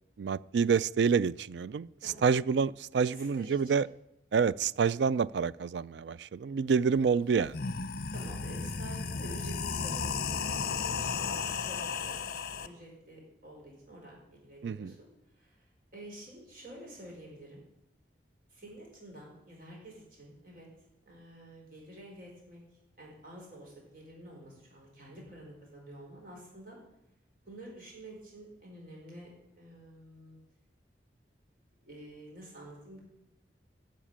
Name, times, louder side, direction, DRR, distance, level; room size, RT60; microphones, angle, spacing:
voice 1, 0.2-3.9 4.3-7.6 14.6-14.9, right 6 dB, 75° right, 19 dB, 0.4 m, -28 dB
voice 2, 2.0-2.3 3.1-3.6 8.1-12.1 12.5-15.1 15.4-15.6 15.9-17.6 18.5-20.7 21.1-22.6 23.0-26.8 27.5-29.3 29.6-30.4 31.8-33.0, right 1 dB, 50° right, -2 dB, 5.2 m, -49 dB
sound 1, 7.0-7.1 7.4-12.7, left 5 dB, 55° left, 0.8 m, -34 dB
12.5 x 7.4 x 8.8 m, 0.87 s
head